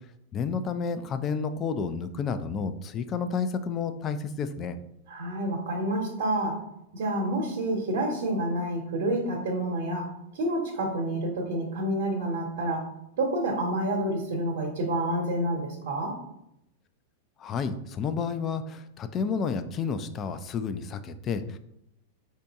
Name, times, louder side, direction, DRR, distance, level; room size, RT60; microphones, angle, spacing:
voice 1, 0.3-4.8 17.4-21.6, left 5 dB, 30° left, 10 dB, 0.4 m, -30 dB
voice 2, 5.1-6.6 6.9-10.1 10.3-12.8 13.1-16.2, right 1 dB, 70° right, 0 dB, 1.1 m, -28 dB
4.3 x 2.7 x 3.5 m, 0.80 s
hypercardioid pair, 105°, 0 cm